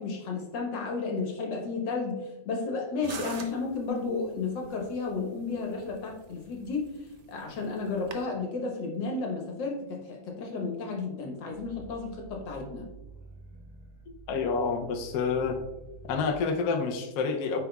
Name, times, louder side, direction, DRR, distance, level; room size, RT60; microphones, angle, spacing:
voice 1, 0.0-12.9, left 4 dB, 80° left, 1 dB, 1.8 m, -33 dB
sound 1, 3.0-8.3, right 5 dB, 65° right, 0.7 m, -46 dB
Growling, 11.5-16.4, right 3 dB, 15° right, 0.7 m, -49 dB
voice 2, 14.3-15.6 16.1-17.6, left 5 dB, 65° left, 3 dB, 1.0 m, -28 dB
9.3 x 4.7 x 2.3 m, 1.0 s
omnidirectional pair, 1.9 m